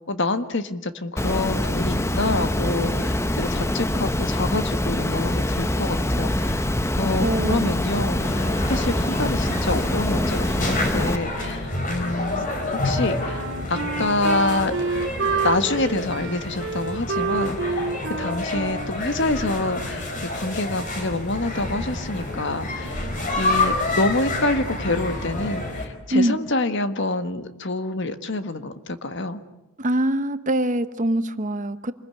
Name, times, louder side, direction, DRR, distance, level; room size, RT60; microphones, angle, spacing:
voice 1, 0.1-6.6 7.0-12.5 12.8-15.0 15.4-23.1 23.4-29.4, left 2 dB, 55° left, 10 dB, 1.6 m, -27 dB
Water, 1.2-11.2, left 1 dB, 15° left, 0.9 m, -24 dB
voice 2, 7.2-7.8 26.1-26.4 29.8-31.9, right 1 dB, 35° right, 11 dB, 1.1 m, -23 dB
sound 1, 8.2-25.9, left 2 dB, 40° left, 4.5 m, -29 dB
Wind instrument woodwind instrument, 12.8-20.1, right 4 dB, 60° right, 2.5 m, -29 dB
27.0 x 21.0 x 9.7 m, 0.97 s
head